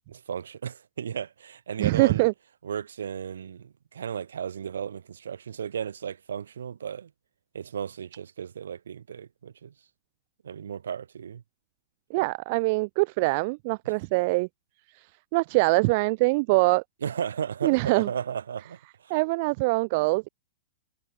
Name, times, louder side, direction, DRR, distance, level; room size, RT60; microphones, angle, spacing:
voice 1, 0.1-2.3 2.6-7.1 7.5-9.7 10.4-11.4 17.0-19.1, right 8 dB, 65° right, 4.5 m, -35 dB
voice 2, 1.8-2.3 12.1-14.5 14.9-15.1 15.3-16.8 17.6-18.1 19.1-20.3, right 26 dB, 45° right, 0.8 m, -23 dB
figure-of-eight pair, 105°, 0 cm